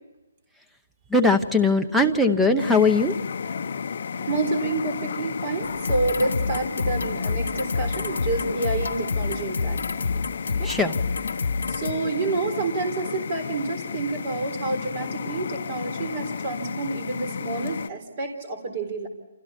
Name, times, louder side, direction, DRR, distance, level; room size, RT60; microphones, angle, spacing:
voice 1, 1.1-3.1 10.6-11.0, left 2 dB, ahead, 8 dB, 0.8 m, -20 dB
sound 1, 2.6-17.9, left 6 dB, 40° left, 1.0 m, -33 dB
voice 2, 4.2-9.8 10.6-10.7 11.7-19.1, right 3 dB, 25° right, 6 dB, 3.9 m, -28 dB
sound 2, 5.6-11.9, left 4 dB, 75° left, 2.8 m, -28 dB
29.5 x 27.5 x 4.4 m, 1.1 s
hypercardioid pair, 180°, 0 cm